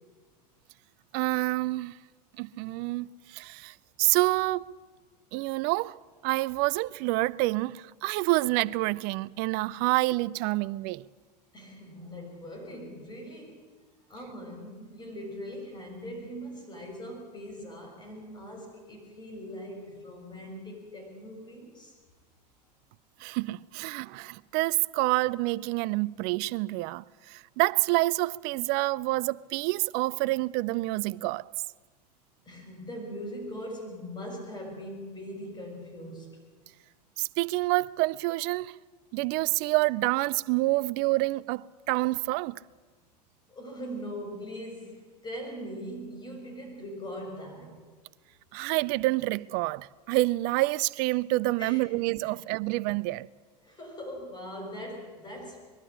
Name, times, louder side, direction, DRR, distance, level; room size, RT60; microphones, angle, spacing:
voice 1, 1.1-1.9 2.4-4.7 5.3-6.0 6.2-11.0 23.2-31.5 37.2-38.7 39.1-42.6 48.5-53.3, right 21 dB, 50° right, 0.5 m, -28 dB
voice 2, 11.5-13.6 14.1-21.9 32.4-36.3 43.5-47.8 51.6-51.8 52.2-52.3 53.6-55.6, equal, 20° left, 6.6 m, -41 dB
21.5 x 12.5 x 9.9 m
hypercardioid pair, 90°, 21 cm